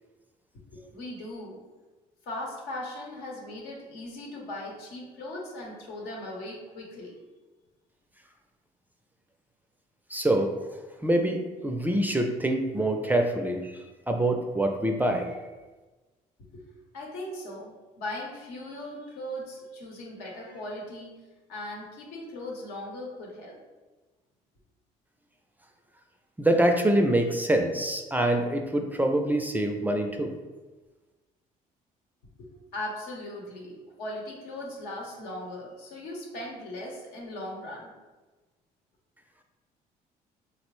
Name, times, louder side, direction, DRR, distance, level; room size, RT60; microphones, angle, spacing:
voice 1, 0.7-1.6 2.3-7.1 16.5-16.6 16.9-21.1 21.5-23.6 32.4-37.9, left 1 dB, 85° left, -2 dB, 0.9 m, -38 dB
voice 2, 10.1-10.6 11.0-15.3 26.4-30.3, right 1 dB, 10° right, 4 dB, 0.3 m, -25 dB
3.9 x 2.0 x 3.0 m, 1.2 s
supercardioid pair, 85°, 16 cm